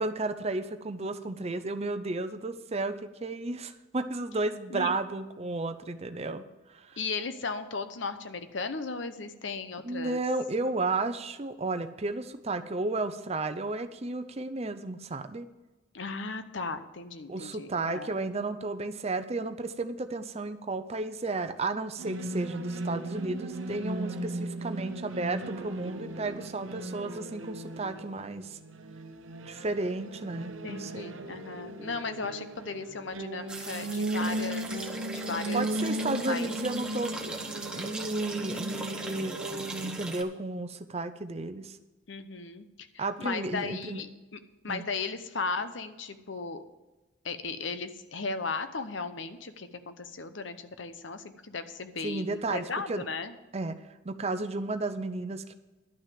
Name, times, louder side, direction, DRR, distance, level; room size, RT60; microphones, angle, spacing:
voice 1, 0.0-6.4 6.7-7.0 9.8-15.5 17.3-28.6 29.5-31.1 35.5-37.3 37.7-39.4 39.8-41.8 43.0-44.1 44.7-44.8 52.0-53.0 53.5-53.7 54.0-55.5, right 2 dB, 35° right, 9 dB, 0.7 m, -33 dB
voice 2, 7.0-10.2 15.9-18.2 30.6-35.7 36.3-36.6 42.1-44.4 44.6-46.6 47.2-53.3, left 4 dB, 70° left, 10 dB, 0.9 m, -36 dB
sound 1, 22.0-40.0, right 1 dB, 85° right, 0.9 m, -37 dB
sound 2, 33.5-40.2, right 2 dB, 5° right, 1.0 m, -39 dB
11.5 x 6.1 x 7.7 m, 1.1 s
head